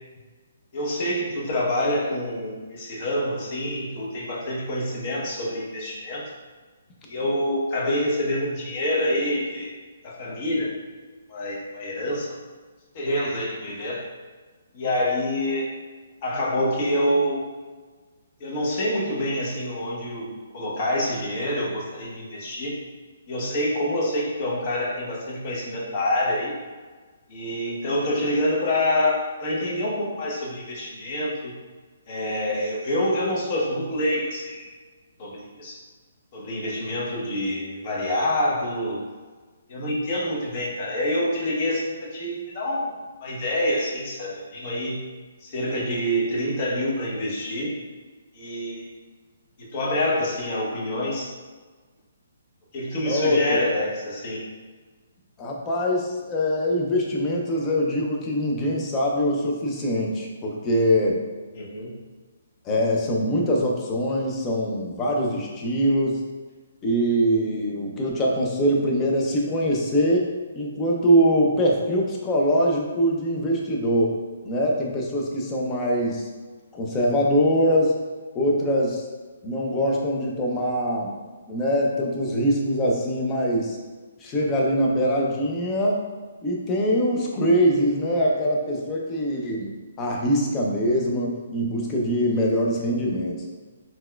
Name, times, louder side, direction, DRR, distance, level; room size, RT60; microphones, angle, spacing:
voice 1, 0.7-6.2 7.0-9.7 10.0-10.7 11.3-12.4 12.9-14.0 14.7-15.7 16.2-17.5 18.4-22.8 23.3-26.5 27.3-31.5 32.1-34.7 35.2-35.8 36.3-39.0 39.7-42.9 43.2-45.0 45.4-47.8 48.3-48.9 49.6-51.3 52.7-54.4 61.5-62.0, left 1 dB, 40° left, -4 dB, 0.8 m, -26 dB
voice 2, 53.0-53.6 55.4-61.2 62.6-66.2 66.8-74.2 74.4-76.2 76.7-78.0 78.3-79.0 79.4-81.1 81.5-83.8 84.2-86.0 86.4-89.7 90.0-93.4, equal, 20° left, -2 dB, 0.5 m, -23 dB
4.0 x 2.3 x 2.2 m, 1.4 s
hypercardioid pair, 155°, 0 cm